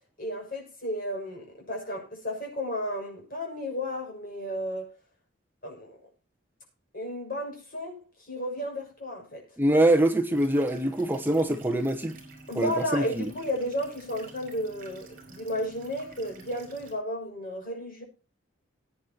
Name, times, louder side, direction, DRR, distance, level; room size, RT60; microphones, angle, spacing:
voice 1, 0.2-4.9 5.6-6.0 6.9-9.4 12.5-18.0, equal, 50° left, 6.5 m, -33 dB
voice 2, 9.6-12.2 12.5-13.3, right 1 dB, 10° right, 1.0 m, -24 dB
sound 1, 10.3-16.9, right 3 dB, 45° right, 5.3 m, -49 dB
20.5 x 9.4 x 2.9 m
head